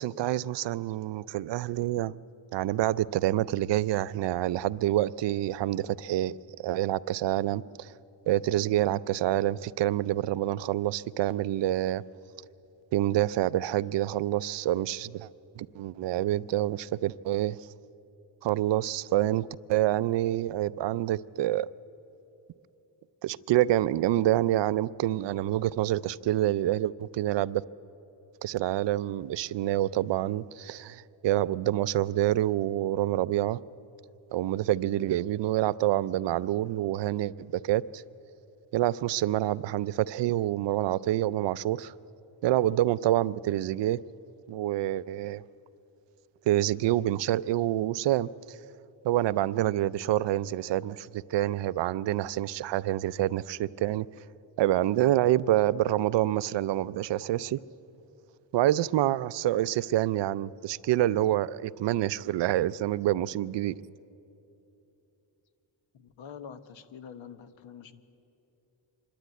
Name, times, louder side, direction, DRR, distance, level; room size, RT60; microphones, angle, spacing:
voice 1, 0.0-2.1 2.5-7.9 8.3-12.0 12.9-15.3 15.6-17.6 18.4-21.7 23.2-27.6 28.4-33.6 34.3-38.0 38.7-41.9 42.4-44.0 44.5-45.4 46.5-48.3 49.0-54.1 54.6-57.6 58.5-63.8, right 13 dB, 65° right, 0.5 m, -27 dB
voice 2, 65.9-68.0, left 7 dB, 75° left, 1.1 m, -46 dB
25.0 x 12.0 x 9.2 m
cardioid pair, 105°, 46 cm